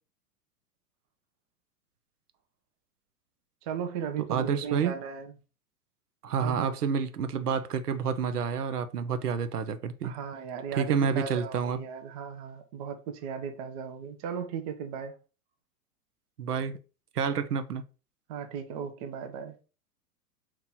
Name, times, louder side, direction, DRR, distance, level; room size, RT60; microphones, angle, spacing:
voice 1, 3.6-5.3 6.4-6.8 10.0-15.2 18.3-19.6, right 7 dB, 25° right, 0.4 m, -36 dB
voice 2, 4.3-5.0 6.2-10.1 10.8-11.8 16.4-16.8 17.2-17.8, right 6 dB, 90° right, 0.6 m, -29 dB
3.0 x 2.9 x 3.6 m
hypercardioid pair, 105°, 45 cm